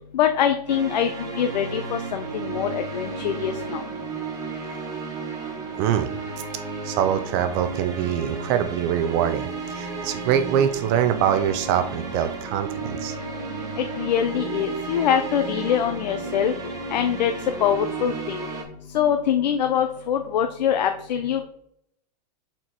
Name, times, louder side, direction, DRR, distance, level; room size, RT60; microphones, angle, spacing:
voice 1, 0.1-3.8 13.8-16.5 16.9-18.5 18.9-21.5, left 9 dB, 85° left, 7 dB, 0.6 m, -24 dB
sound 1, 0.7-18.6, right 4 dB, 15° right, 1.4 m, -33 dB
voice 2, 5.8-6.1 6.8-13.1, right 9 dB, 40° right, 9 dB, 0.5 m, -24 dB
6.6 x 4.4 x 4.4 m, 0.72 s
supercardioid pair, 145°, 21 cm